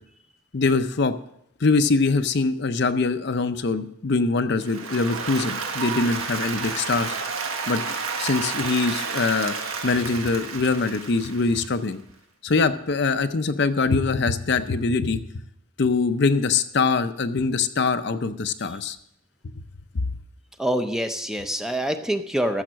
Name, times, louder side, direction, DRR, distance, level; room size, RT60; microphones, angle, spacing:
voice 1, 0.5-1.1 1.6-7.1 7.7-9.5 9.8-12.0 12.4-15.2 15.8-19.0 19.9-20.0, left 4 dB, 55° left, 10 dB, 0.6 m, -23 dB
Applause, 4.6-11.8, right 5 dB, 85° right, 1.4 m, -31 dB
voice 2, 20.6-22.6, equal, 5° right, 7 dB, 0.6 m, -25 dB
13.5 x 7.2 x 6.2 m, 0.77 s
head